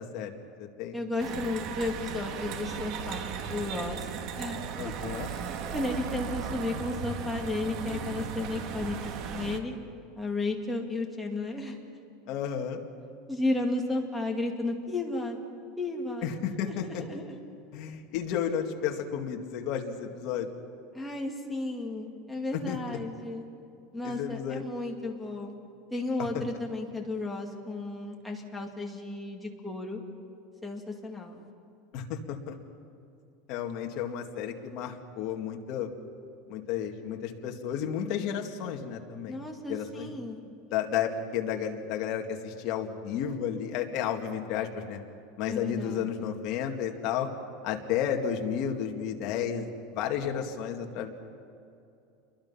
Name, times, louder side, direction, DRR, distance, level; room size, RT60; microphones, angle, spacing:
voice 1, 0.0-1.0 4.8-5.3 12.3-12.8 16.2-17.0 17.7-20.5 22.5-22.8 24.0-24.6 26.3-26.4 31.9-32.6 33.5-35.9 36.5-39.4 39.7-40.1 40.7-45.0 45.4-47.3 47.6-51.1, left 8 dB, 45° left, 2 dB, 2.2 m, -32 dB
voice 2, 0.9-4.9 5.7-9.7 10.2-11.8 13.3-15.4 15.8-16.3 16.7-17.4 20.9-23.4 23.9-25.5 25.9-30.0 30.6-31.5 39.3-40.4 45.5-46.3, left 2 dB, 5° left, -1 dB, 2.3 m, -33 dB
sound 1, 1.2-9.6, right 7 dB, 45° right, 1.5 m, -36 dB
28.5 x 23.0 x 5.8 m, 2.6 s
supercardioid pair, 160°, 0 cm